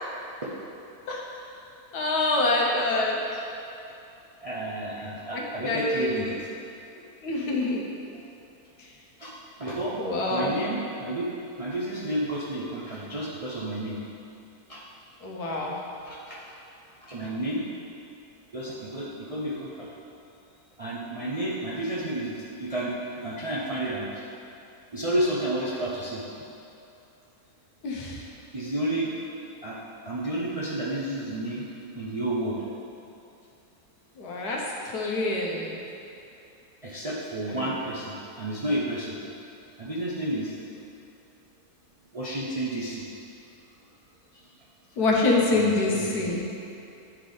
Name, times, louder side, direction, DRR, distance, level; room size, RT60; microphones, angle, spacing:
voice 1, 1.1-1.4 1.9-3.2 5.3-6.4 7.2-7.8 8.8-8.9 10.0-10.5 15.2-15.8 27.8-28.3 34.2-35.8 37.5-37.7 45.0-46.4, left 2 dB, 80° left, -2 dB, 1.4 m, -26 dB
voice 2, 4.4-6.3 9.2-9.3 9.6-10.0 10.3-11.3 11.6-14.0 14.7-14.8 16.0-16.5 17.0-17.6 18.5-19.9 20.8-22.9 23.2-24.1 24.9-26.2 28.5-29.1 29.6-29.8 30.1-31.7 32.0-32.6 36.8-39.2 39.8-40.5 42.1-43.1 45.5-46.3, right 1 dB, 45° right, -7 dB, 0.4 m, -31 dB
10.0 x 3.4 x 3.9 m, 2.7 s
omnidirectional pair, 1.6 m